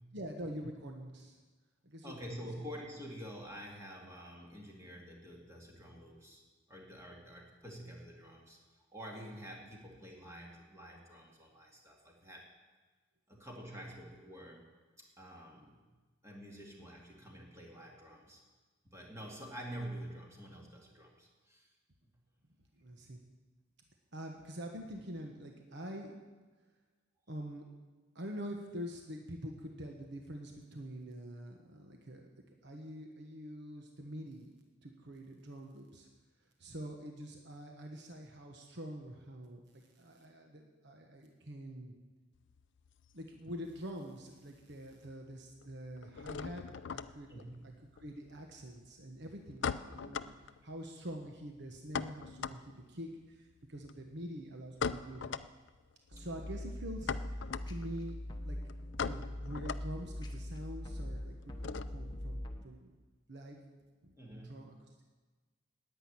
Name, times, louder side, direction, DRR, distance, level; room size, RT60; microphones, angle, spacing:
voice 1, 0.1-1.4 1.8-2.4 22.8-23.2 24.1-26.2 27.3-27.6 28.1-32.3 32.6-34.5 34.8-36.1 36.6-41.9 43.1-46.6 46.9-47.5 47.9-50.3 50.6-55.3 56.1-58.2 58.4-62.9 63.3-63.6 64.0-64.1 64.4-64.7, equal, 60° right, 2 dB, 1.2 m, -45 dB
voice 2, 2.0-6.4 6.7-8.6 8.9-12.5 13.3-14.7 15.0-15.9 16.2-18.4 18.8-21.7 47.3-47.5 56.2-56.3 64.2-64.8, equal, 15° right, -1 dB, 2.4 m, -48 dB
sound 1, 42.4-44.0 44.2-44.9 45.2-62.2, left 6 dB, 60° left, 0.4 m, -42 dB
sound 2, 56.1-62.6, left 1 dB, 20° left, 1.0 m, -42 dB
10.5 x 9.2 x 9.6 m, 1.3 s
head